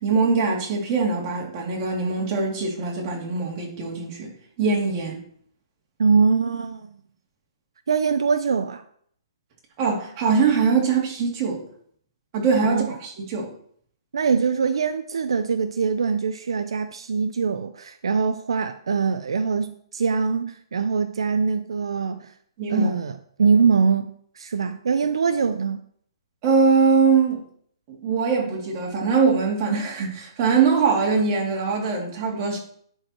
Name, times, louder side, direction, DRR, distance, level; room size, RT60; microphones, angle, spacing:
voice 1, 0.0-4.3 4.6-5.2 9.8-11.6 12.3-13.5 22.6-22.9 26.4-27.4 27.9-32.6, right 5 dB, 30° right, 2.8 m, -22 dB
voice 2, 6.0-6.9 7.9-8.8 12.6-12.9 14.1-22.3 22.7-23.1 23.4-25.8, right 5 dB, 80° right, 0.6 m, -23 dB
10.5 x 4.8 x 4.4 m
hypercardioid pair, 150°, 3 cm